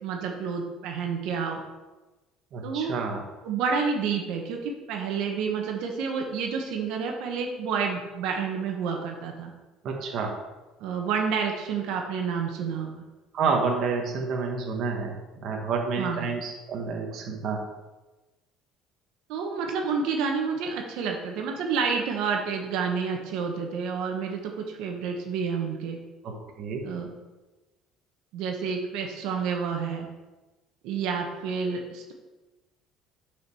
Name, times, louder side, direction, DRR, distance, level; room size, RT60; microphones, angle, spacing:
voice 1, 0.0-1.6 2.6-2.9 3.4-9.5 10.8-12.9 16.0-16.2 19.3-26.0 26.8-27.1 28.3-30.1 30.8-32.1, right 5 dB, 75° right, 2 dB, 1.4 m, -29 dB
voice 2, 2.5-3.2 9.8-10.4 13.3-15.1 15.4-17.6 26.2-26.8, right 4 dB, 55° right, 0 dB, 1.4 m, -29 dB
6.5 x 5.0 x 6.3 m, 1.1 s
cardioid pair, 125°, 0 cm